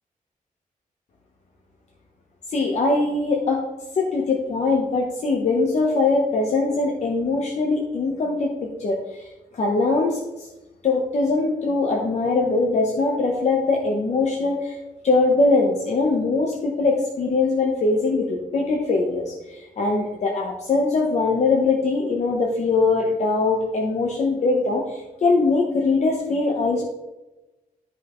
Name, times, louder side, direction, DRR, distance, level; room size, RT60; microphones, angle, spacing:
voice 1, 2.5-3.6 4.0-9.3 9.5-10.5 10.8-14.8 15.0-26.8, left 3 dB, 50° left, -1 dB, 1.1 m, -22 dB
12.5 x 5.5 x 3.1 m, 1.0 s
wide cardioid pair, 175°, 14 cm